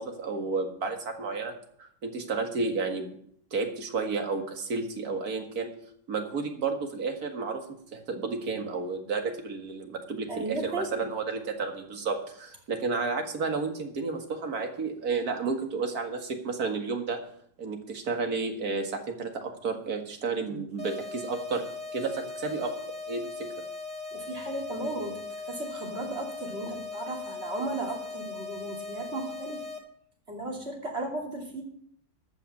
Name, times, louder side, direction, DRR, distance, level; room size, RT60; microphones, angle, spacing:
voice 1, 0.0-1.5 1.8-3.1 3.5-5.7 6.1-7.6 7.9-17.2 17.6-21.7 21.9-22.7 23.1-23.3, right 4 dB, 55° right, 4 dB, 2.2 m, -31 dB
voice 2, 10.3-11.1 24.1-29.6 30.3-31.6, right 2 dB, 35° right, 0 dB, 3.0 m, -35 dB
sound 1, 20.8-29.8, left 3 dB, 5° left, 1.8 m, -39 dB
14.0 x 5.6 x 8.4 m, 0.66 s
omnidirectional pair, 1.9 m